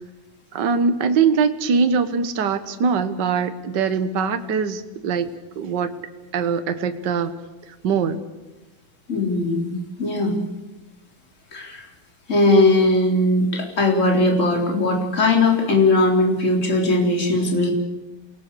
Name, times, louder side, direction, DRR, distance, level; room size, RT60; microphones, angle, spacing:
voice 1, 0.5-5.3 5.6-5.9 6.3-7.3 7.8-8.2, right 5 dB, 75° right, 9 dB, 1.0 m, -22 dB
voice 2, 9.1-10.4 11.5-11.9 12.3-17.7, left 2 dB, 20° left, 0 dB, 4.1 m, -19 dB
29.0 x 19.0 x 6.8 m, 1.1 s
omnidirectional pair, 4.0 m